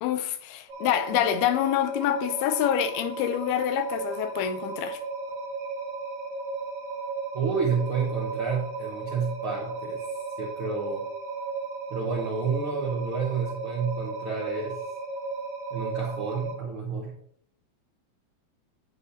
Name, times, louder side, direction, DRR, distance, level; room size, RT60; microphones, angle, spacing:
voice 1, 0.0-5.0, left 12 dB, 85° left, 2.6 m, -26 dB
sound 1, 0.7-16.6, right 4 dB, 55° right, 1.8 m, -35 dB
voice 2, 7.3-10.0 10.4-11.0 11.9-14.8 15.7-17.1, right 5 dB, 80° right, 1.2 m, -30 dB
9.7 x 8.3 x 2.8 m
omnidirectional pair, 4.4 m